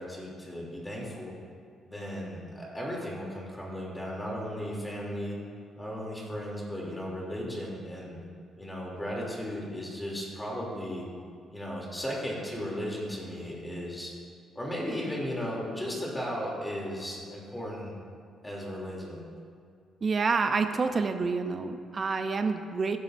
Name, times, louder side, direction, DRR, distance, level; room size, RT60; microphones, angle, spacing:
voice 1, 0.0-1.4 1.8-5.4 5.8-8.2 8.6-11.1 11.5-14.1 14.5-18.0 18.4-19.3, equal, 10° left, -4 dB, 3.1 m, -36 dB
voice 2, 20.0-23.0, right 4 dB, 40° right, 7 dB, 0.7 m, -28 dB
15.0 x 11.5 x 2.7 m, 2.2 s
cardioid pair, 90°, 0 cm